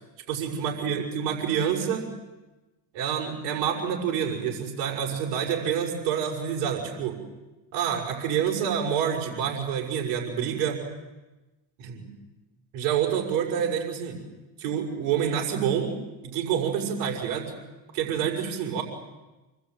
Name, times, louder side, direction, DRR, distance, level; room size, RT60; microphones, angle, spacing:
voice 1, 0.3-2.1 2.9-7.2 7.7-10.8 11.8-12.1 12.7-14.2 14.6-15.9 16.2-17.5 17.9-18.8, right 8 dB, 80° right, 0 dB, 6.2 m, -27 dB
27.5 x 20.5 x 9.3 m, 1.1 s
supercardioid pair, 85°, 48 cm